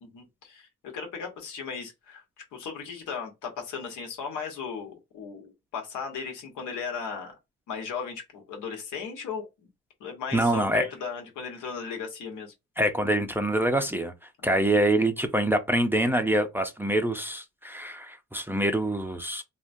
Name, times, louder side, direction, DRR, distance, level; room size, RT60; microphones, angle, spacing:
voice 1, 0.0-0.7 0.9-2.2 2.5-7.3 7.7-9.7 10.0-12.5 14.4-14.6, left 6 dB, 80° left, 1.2 m, -36 dB
voice 2, 10.3-10.9 12.8-14.1 14.4-19.4, right 1 dB, 5° right, 0.5 m, -25 dB
3.6 x 2.2 x 2.6 m
cardioid pair, 90°, 30 cm